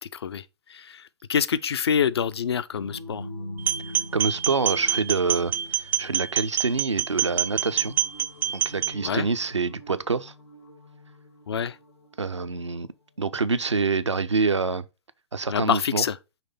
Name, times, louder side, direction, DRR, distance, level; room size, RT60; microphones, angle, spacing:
voice 1, 0.1-0.4 0.7-1.0 1.3-3.2 9.0-9.3 11.5-11.7 15.5-16.1, left 7 dB, 65° left, 0.4 m, -26 dB
sound 1, 2.7-12.6, left 1 dB, 80° left, 1.3 m, -43 dB
sound 2, 3.6-8.9, right 10 dB, 15° right, 0.3 m, -26 dB
voice 2, 4.1-7.9 8.5-10.3 12.2-12.9 13.2-14.8 15.3-16.1, right 4 dB, 80° right, 0.5 m, -26 dB
5.8 x 3.2 x 5.1 m
figure-of-eight pair, 110°, 15 cm